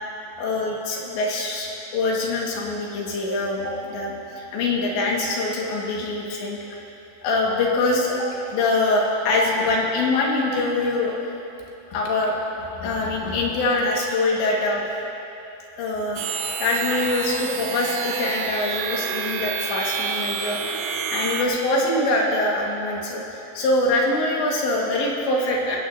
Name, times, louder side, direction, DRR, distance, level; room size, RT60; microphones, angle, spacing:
voice 1, 0.4-6.8 7.2-11.1 11.9-14.8 15.8-25.8, left 2 dB, 85° left, -2 dB, 4.0 m, -24 dB
sound 1, 16.2-21.4, right 6 dB, 75° right, 2.2 m, -29 dB
20.5 x 16.5 x 2.7 m, 2.9 s
omnidirectional pair, 5.0 m